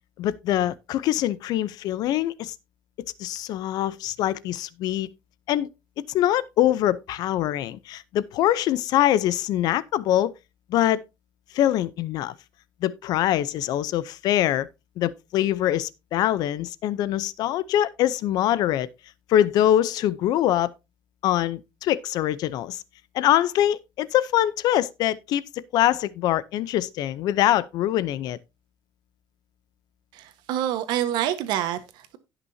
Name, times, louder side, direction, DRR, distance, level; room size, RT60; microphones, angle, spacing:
voice 1, 0.2-2.6 3.2-5.1 5.5-5.7 6.1-10.3 10.7-11.0 11.5-12.3 12.8-14.7 15.0-18.9 19.3-20.7 21.2-22.8 23.1-25.4 25.7-28.4, left 12 dB, 65° left, 0.6 m, -23 dB
voice 2, 30.1-32.2, right 11 dB, 80° right, 1.2 m, -27 dB
17.0 x 6.0 x 2.7 m
cardioid pair, 160°, 8 cm